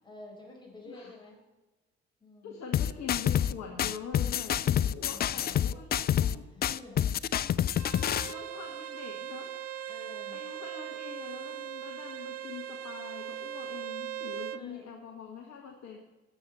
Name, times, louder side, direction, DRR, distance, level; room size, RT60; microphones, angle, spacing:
voice 1, 0.0-1.4 2.2-2.6 4.9-5.4 6.4-7.1 9.9-10.4 14.5-14.9, left 3 dB, 15° left, -2 dB, 4.6 m, -49 dB
voice 2, 0.8-1.2 2.4-6.5 8.3-9.5 10.3-16.0, left 6 dB, 50° left, 2 dB, 1.5 m, -43 dB
sound 1, 2.7-3.5 3.8-6.3 6.6-8.3, left 10 dB, 30° left, 0.4 m, -27 dB
Bowed string instrument, 7.7-14.6, right 10 dB, 45° right, 0.7 m, -40 dB
18.5 x 7.2 x 4.2 m, 1.1 s
figure-of-eight pair, 45°, 34 cm